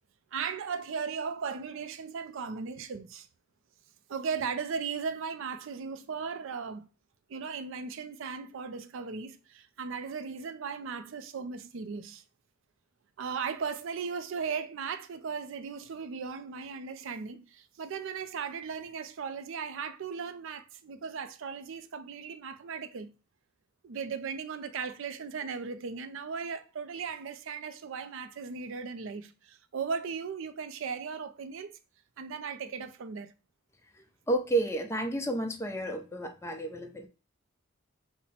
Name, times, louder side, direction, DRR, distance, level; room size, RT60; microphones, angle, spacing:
voice 1, 0.3-3.3 4.1-6.9 7.3-12.2 13.2-23.1 23.8-31.8 32.2-33.3, right 5 dB, 70° right, 0.4 m, -37 dB
voice 2, 34.3-37.1, right 2 dB, 15° left, 0.6 m, -31 dB
5.6 x 2.1 x 4.2 m
head